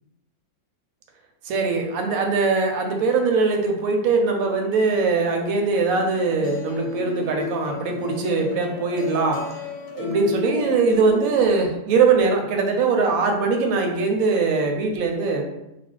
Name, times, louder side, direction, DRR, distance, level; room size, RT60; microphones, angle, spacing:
voice 1, 1.4-9.4 9.9-15.4, right 4 dB, 70° right, 3 dB, 0.9 m, -21 dB
sound 1, 5.9-11.5, left 5 dB, 65° left, 0.9 m, -33 dB
2.5 x 2.2 x 3.7 m, 0.90 s
omnidirectional pair, 1.6 m